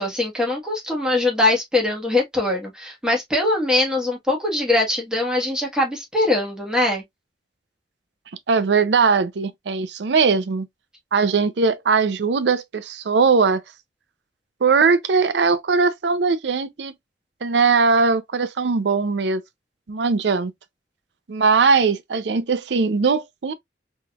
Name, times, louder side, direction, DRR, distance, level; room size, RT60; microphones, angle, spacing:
voice 1, 0.0-7.0, left 2 dB, 5° right, 1.3 m, -22 dB
voice 2, 8.5-10.7 11.1-13.6 14.6-16.9 17.4-19.4 19.9-20.5 21.3-23.5, right 4 dB, 75° right, 0.5 m, -20 dB
3.7 x 3.1 x 2.3 m
head